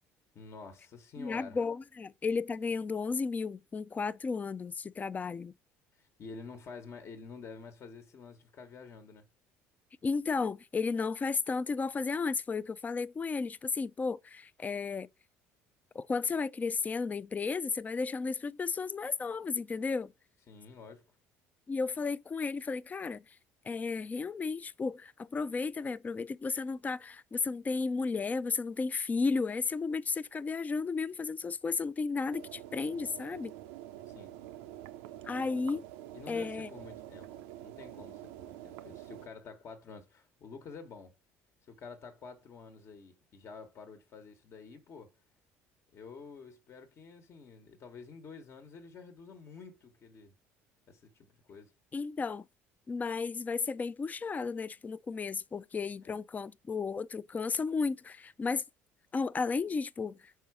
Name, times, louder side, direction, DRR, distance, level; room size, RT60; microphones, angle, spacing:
voice 1, 0.3-1.6 6.0-9.3 20.5-21.0 34.1-34.3 36.1-41.1 41.7-45.1 45.9-50.3 50.9-51.7 56.0-56.1, left 4 dB, 50° left, 1.2 m, -49 dB
voice 2, 1.2-5.5 10.0-15.1 15.9-20.1 21.7-23.2 23.7-33.5 35.3-35.8 36.3-36.7 51.9-52.4 52.9-58.6 59.1-60.2, left 4 dB, 25° left, 0.4 m, -33 dB
sound 1, 32.3-39.3, right 13 dB, 85° right, 0.5 m, -47 dB
5.5 x 4.7 x 4.8 m
supercardioid pair, 75°, 6 cm